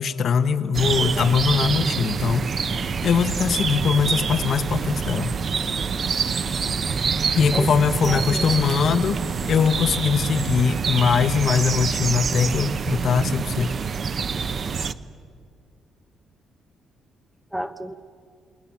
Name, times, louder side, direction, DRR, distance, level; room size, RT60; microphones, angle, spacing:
voice 1, 0.0-2.5 3.0-5.3 7.3-13.7, left 6 dB, 50° left, 10 dB, 1.0 m, -21 dB
sound 1, 0.7-14.9, right 6 dB, 40° right, 0.6 m, -26 dB
sound 2, 2.0-11.8, left 2 dB, 15° left, 4.4 m, -42 dB
voice 2, 8.0-9.2 17.5-17.9, equal, 5° right, 11 dB, 0.8 m, -32 dB
28.5 x 21.0 x 7.3 m, 2.3 s
cardioid pair, 145°, 0 cm